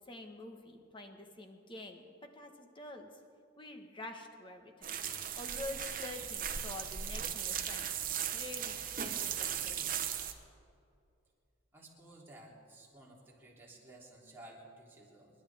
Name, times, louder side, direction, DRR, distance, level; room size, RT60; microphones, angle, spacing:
voice 1, 0.1-2.0 2.3-3.1 3.6-4.9 5.4-7.9 8.3-9.4 9.6-9.8, left 2 dB, 25° left, 4 dB, 1.3 m, -47 dB
sound 1, 4.8-10.3, right 9 dB, 45° right, 1.0 m, -37 dB
voice 2, 11.7-15.4, right 1 dB, 10° right, -5 dB, 3.2 m, -55 dB
29.0 x 12.0 x 3.5 m, 2.5 s
head